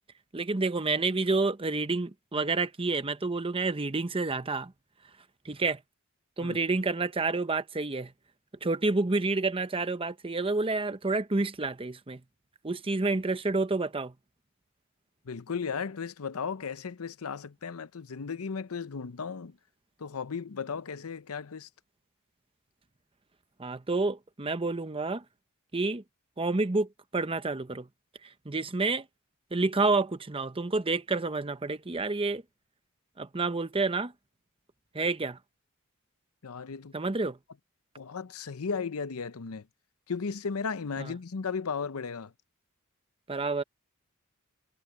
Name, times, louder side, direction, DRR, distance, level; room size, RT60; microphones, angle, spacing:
voice 1, 0.3-4.7 5.4-5.8 6.4-8.1 8.6-12.2 12.6-14.1 23.6-25.2 25.7-26.0 26.4-27.9 28.2-29.1 29.5-32.4 33.2-34.1 34.9-35.4 36.9-37.4 41.0-41.1 43.3-43.6, right 3 dB, 25° right, 0.9 m, -29 dB
voice 2, 15.3-19.6 20.0-21.7 36.4-36.9 38.0-39.7 40.1-42.3, left 5 dB, 90° left, 0.7 m, -35 dB
head